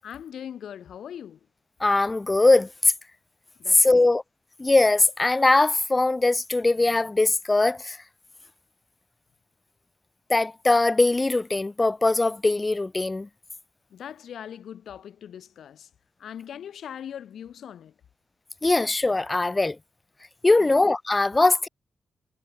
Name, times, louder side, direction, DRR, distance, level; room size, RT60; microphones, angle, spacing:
voice 1, 0.0-1.4 3.6-4.1 13.9-15.9 16.2-17.9 20.6-20.8, left 9 dB, 80° left, 3.5 m, -40 dB
voice 2, 1.8-2.9 3.7-4.2 4.6-8.0 10.3-13.3 18.6-19.8 20.4-21.7, left 2 dB, 20° left, 0.8 m, -21 dB
cardioid pair, 105°, 0 cm